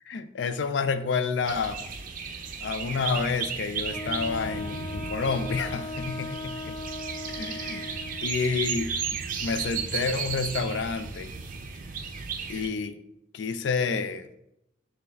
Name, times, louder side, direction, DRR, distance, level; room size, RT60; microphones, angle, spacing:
voice 1, 0.1-1.9 2.6-6.8 7.3-9.0 9.4-11.3 12.5-13.0 13.3-14.3, left 5 dB, 70° left, 10 dB, 0.4 m, -29 dB
sound 1, 1.5-12.7, right 6 dB, 45° right, 0.4 m, -34 dB
Wind instrument woodwind instrument, 3.9-8.3, left 3 dB, 15° left, 0.5 m, -38 dB
6.3 x 2.3 x 3.4 m, 0.82 s
head